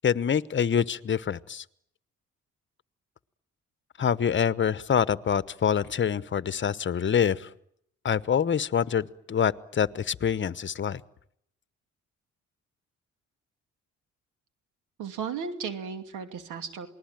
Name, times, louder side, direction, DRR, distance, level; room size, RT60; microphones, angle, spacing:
voice 1, 0.0-1.6 4.0-7.5 8.0-11.0, left 8 dB, 40° left, 16 dB, 1.1 m, -26 dB
voice 2, 15.0-16.9, right 6 dB, 85° right, 8 dB, 2.7 m, -35 dB
28.0 x 20.5 x 9.1 m, 0.73 s
cardioid pair, 90°, 30 cm